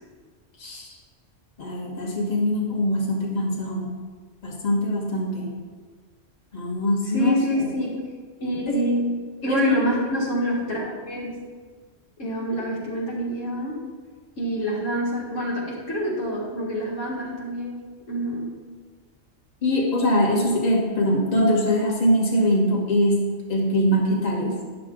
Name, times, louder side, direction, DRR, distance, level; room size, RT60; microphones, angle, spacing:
voice 1, 0.6-1.0 1.6-3.9 4.4-5.5 6.5-7.7 8.7-8.8 9.5-9.9 19.6-24.6, equal, 35° left, -3 dB, 1.6 m, -23 dB
voice 2, 7.1-8.0 8.4-9.1 9.4-11.3 12.2-13.8 14.4-17.8 18.1-18.5, equal, 80° left, -5 dB, 2.3 m, -26 dB
10.5 x 6.7 x 3.8 m, 1.5 s
omnidirectional pair, 1.3 m